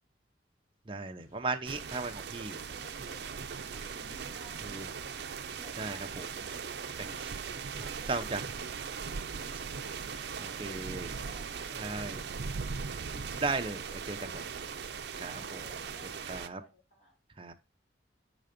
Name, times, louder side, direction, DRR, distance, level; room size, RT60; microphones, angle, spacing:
voice 1, 0.9-2.6 4.6-4.9 5.8-6.3 8.1-8.4 9.5-9.6 10.2-10.3 10.6-11.1 11.8-12.2 13.4-14.4 15.2-15.8 16.3-16.6 17.4-17.5, right 3 dB, 30° right, 0.8 m, -36 dB
sound 1, 1.2-9.4, right 1 dB, 20° left, 3.8 m, -60 dB
sound 2, 1.6-16.5, right 6 dB, 65° right, 0.5 m, -39 dB
voice 2, 2.7-8.9 10.1-12.6 13.1-13.5 14.6-17.2, left 1 dB, 45° left, 4.2 m, -57 dB
6.8 x 4.0 x 5.0 m
head